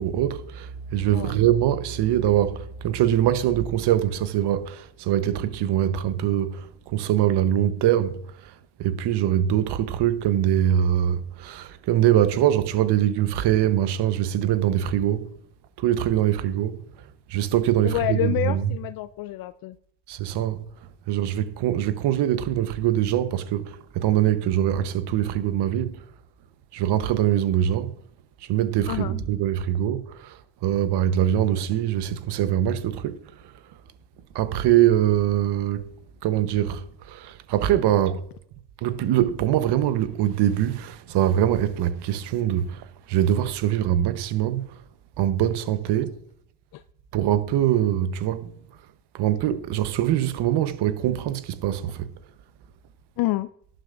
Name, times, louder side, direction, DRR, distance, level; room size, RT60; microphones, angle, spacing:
voice 1, 0.0-8.5 8.8-15.3 15.8-16.8 17.3-18.8 20.1-20.6 21.1-26.0 26.7-27.9 28.4-33.5 34.3-35.9 36.2-38.2 38.8-44.7 45.2-46.1 47.1-48.5 49.1-52.1, right 11 dB, 55° right, 1.1 m, -23 dB
voice 2, 17.8-19.8 28.9-29.2 46.7-46.8 53.2-53.5, left 16 dB, 50° left, 0.5 m, -28 dB
11.5 x 11.5 x 2.6 m
supercardioid pair, 85°, 48 cm